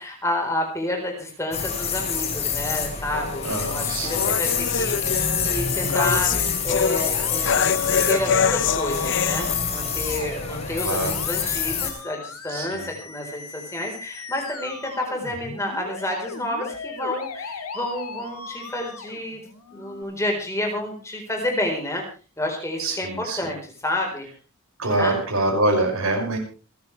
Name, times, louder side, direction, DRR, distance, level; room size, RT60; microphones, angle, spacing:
voice 1, 0.0-7.7 8.1-19.4 19.7-22.0 22.4-24.3 24.8-25.2, left 1 dB, 15° left, 1 dB, 4.2 m, -30 dB
sound 1, 1.5-11.9, left 6 dB, 30° left, 3.0 m, -27 dB
sound 2, 3.1-9.5, left 6 dB, 55° left, 0.6 m, -25 dB
voice 2, 3.4-4.6 10.8-11.2 12.5-12.9 22.8-23.5 24.8-26.4, right 2 dB, 75° right, 1 dB, 5.9 m, -25 dB
Musical instrument, 4.1-20.0, left 3 dB, 85° left, 2.0 m, -38 dB
28.0 x 10.5 x 3.4 m, 0.36 s
head